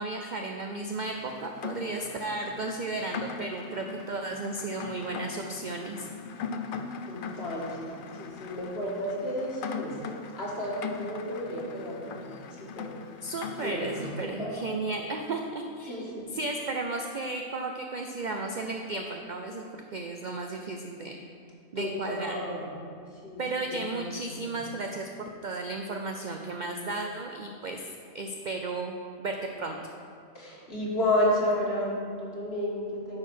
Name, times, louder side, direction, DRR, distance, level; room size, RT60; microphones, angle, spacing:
voice 1, 0.0-6.1 13.2-21.1 21.7-22.4 23.4-27.9 28.1-29.8, right 2 dB, 65° right, 3 dB, 0.4 m, -34 dB
Rain, 1.0-14.3, left 6 dB, 65° left, 0.5 m, -40 dB
voice 2, 7.1-7.9 8.2-10.0 10.3-12.3 12.6-13.0 13.6-14.6 15.9-16.3 21.8-22.7 23.2-24.6 30.3-33.2, left 1 dB, 50° left, -4 dB, 1.9 m, -32 dB
9.6 x 4.6 x 6.2 m, 2.4 s
omnidirectional pair, 1.4 m